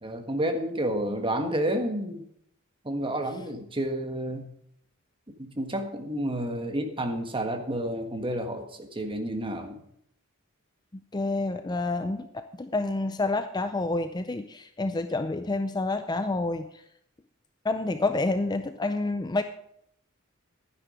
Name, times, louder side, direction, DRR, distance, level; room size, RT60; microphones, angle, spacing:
voice 1, 0.0-2.2 2.8-4.5 5.4-9.8, right 1 dB, 25° right, 4 dB, 1.5 m, -30 dB
voice 2, 11.1-16.7 17.6-19.4, left 2 dB, 20° left, 9 dB, 0.5 m, -28 dB
12.0 x 9.8 x 5.1 m, 0.71 s
head